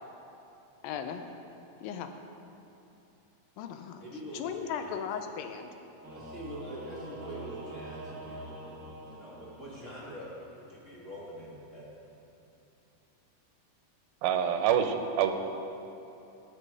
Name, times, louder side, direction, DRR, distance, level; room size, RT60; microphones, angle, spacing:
voice 1, 0.8-1.3 1.8-2.1 3.6-4.0 4.3-5.7, left 7 dB, 80° left, 7 dB, 2.3 m, -37 dB
voice 2, 4.0-5.0 6.1-11.9, right 1 dB, 30° left, -6 dB, 1.4 m, -44 dB
Singing / Musical instrument, 6.0-10.1, right 1 dB, 45° right, 1.0 m, -44 dB
voice 3, 14.2-15.3, right 9 dB, 85° right, 7 dB, 2.6 m, -26 dB
17.5 x 7.0 x 4.8 m, 2.9 s
omnidirectional pair, 4.1 m